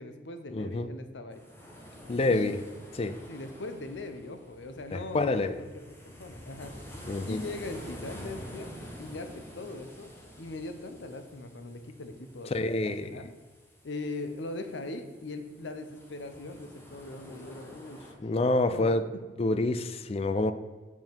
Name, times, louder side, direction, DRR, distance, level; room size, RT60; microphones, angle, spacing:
voice 1, 0.0-1.4 2.3-2.5 3.1-8.7 9.0-10.1 10.4-13.3 13.8-18.1 18.7-18.9, left 2 dB, 90° left, 8 dB, 0.7 m, -40 dB
voice 2, 0.5-0.9 2.1-2.6 3.0-3.2 4.9-5.6 7.1-7.4 12.5-13.1 18.2-19.0 19.4-20.5, left 2 dB, 35° left, 11 dB, 0.4 m, -27 dB
sound 1, 1.3-18.1, equal, 15° left, 1.1 m, -48 dB
7.1 x 5.6 x 4.5 m, 1.3 s
head